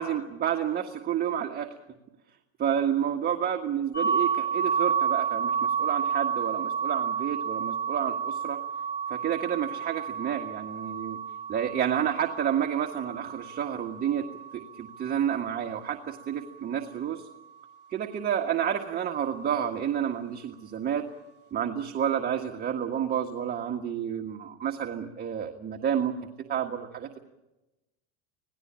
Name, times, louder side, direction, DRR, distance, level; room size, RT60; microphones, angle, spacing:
voice 1, 0.0-1.7 2.6-8.6 9.1-11.2 11.5-14.3 14.5-17.3 17.9-21.0 21.5-26.1 26.5-27.2, right 9 dB, 25° right, 3 dB, 1.6 m, -30 dB
sound 1, 3.9-15.7, right 7 dB, 30° left, 3.5 m, -31 dB
26.5 x 18.0 x 8.7 m, 1.0 s
supercardioid pair, 130°, 34 cm